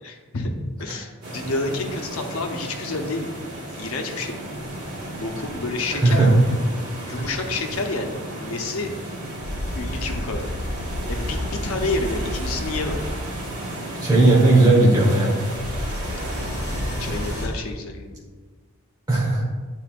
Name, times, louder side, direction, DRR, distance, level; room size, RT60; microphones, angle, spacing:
voice 1, 0.0-0.5 0.8-3.3 3.6-4.4 5.2-6.2 7.0-8.9 9.7-10.5 11.1-13.0 17.0-18.2, left 2 dB, 80° left, 3 dB, 0.8 m, -29 dB
sound 1, 1.2-17.5, right 1 dB, 90° right, 1.7 m, -34 dB
sound 2, 9.4-13.5 15.5-17.8, left 1 dB, 45° left, 0.6 m, -31 dB
voice 2, 14.0-15.4 19.1-19.4, right 2 dB, 20° right, -5 dB, 1.3 m, -16 dB
9.3 x 4.5 x 2.5 m, 1.4 s
head